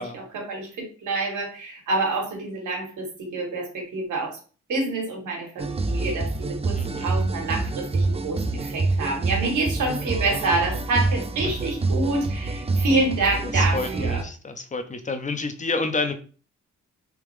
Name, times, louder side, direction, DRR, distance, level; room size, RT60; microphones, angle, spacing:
voice 1, 0.0-4.4 4.7-14.2, right 2 dB, 90° right, 1 dB, 1.4 m, -27 dB
sound 1, 5.6-14.2, right 3 dB, 20° right, 0.4 m, -26 dB
voice 2, 6.8-7.1 9.8-10.0 11.4-11.5 13.5-16.1, left 3 dB, 25° left, 8 dB, 0.6 m, -29 dB
3.5 x 3.0 x 3.2 m, 0.38 s
cardioid pair, 85°, 30 cm